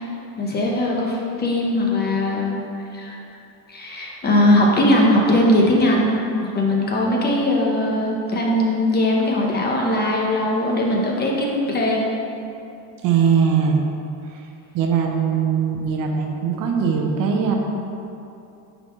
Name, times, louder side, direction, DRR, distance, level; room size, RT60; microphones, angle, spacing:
voice 1, 0.4-3.2 3.7-6.2 6.5-12.1, left 1 dB, 25° left, -2 dB, 0.8 m, -20 dB
voice 2, 13.0-13.8 14.7-17.5, right 6 dB, 50° right, 2 dB, 0.8 m, -20 dB
9.7 x 4.1 x 3.1 m, 2.7 s
cardioid pair, 150°, 41 cm